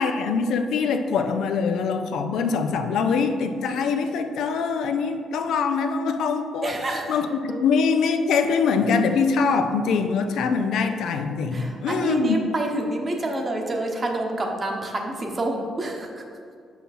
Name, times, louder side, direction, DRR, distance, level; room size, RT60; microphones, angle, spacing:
voice 1, 0.0-6.8 7.1-12.4, left 5 dB, 80° left, 6 dB, 0.5 m, -23 dB
voice 2, 6.6-7.0 7.5-7.6 11.5-16.2, right 2 dB, 35° right, 2 dB, 1.0 m, -27 dB
5.8 x 5.6 x 4.2 m, 2.3 s
cardioid pair, 90°, 0 cm